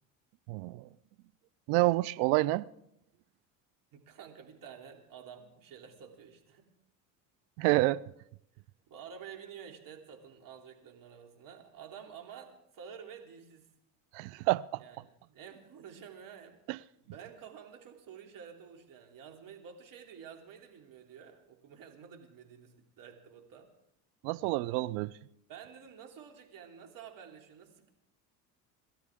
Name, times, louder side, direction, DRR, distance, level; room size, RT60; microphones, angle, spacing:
voice 1, 0.5-0.9 1.7-2.7 7.6-8.0 14.1-14.8 16.7-16.8 24.2-25.1, right 19 dB, 75° right, 0.6 m, -28 dB
voice 2, 3.9-6.7 8.9-13.7 14.8-16.6 17.0-23.7 25.5-27.9, right 7 dB, 50° right, 3.1 m, -50 dB
28.5 x 12.5 x 3.7 m
supercardioid pair, 90°, 41 cm